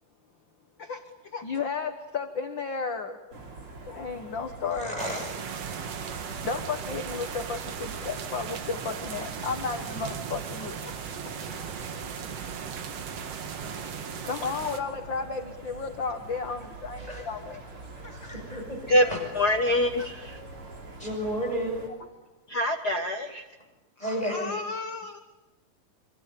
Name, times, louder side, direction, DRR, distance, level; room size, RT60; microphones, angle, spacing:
voice 1, 0.8-3.2 3.9-5.0 5.9-6.0 6.4-10.9 11.2-11.3 13.7-13.9 14.2-17.6 18.0-18.3 24.0-25.2, left 5 dB, 55° left, 7 dB, 1.3 m, -33 dB
sound 1, 3.3-21.9, right 2 dB, 40° right, 4.1 m, -45 dB
voice 2, 4.8-5.3 17.1-17.2 18.1-18.8 21.0-21.9 24.0-24.6, equal, 10° left, 2 dB, 6.9 m, -32 dB
sound 2, 5.0-14.8, right 7 dB, 55° right, 2.3 m, -37 dB
voice 3, 18.9-20.4 22.5-23.4, left 1 dB, 90° left, 4 dB, 0.8 m, -25 dB
26.0 x 25.5 x 8.4 m, 1.0 s
omnidirectional pair, 4.1 m